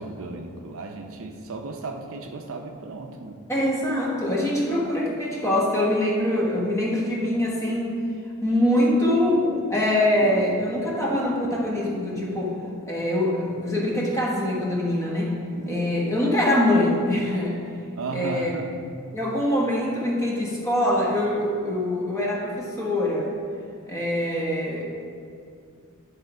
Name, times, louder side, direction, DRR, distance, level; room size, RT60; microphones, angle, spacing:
voice 1, 0.0-3.4 18.0-18.9, right 3 dB, 65° right, 4 dB, 0.6 m, -35 dB
voice 2, 3.5-8.0 8.4-9.4 9.7-12.5 12.9-15.3 15.7-17.6 18.1-18.5 19.1-23.3 23.9-24.9, left 1 dB, 15° left, -3 dB, 1.2 m, -24 dB
sound 1, 8.7-13.2 13.4-17.0 17.3-17.4, left 1 dB, 30° right, 0.9 m, -36 dB
10.0 x 3.6 x 4.8 m, 2.3 s
head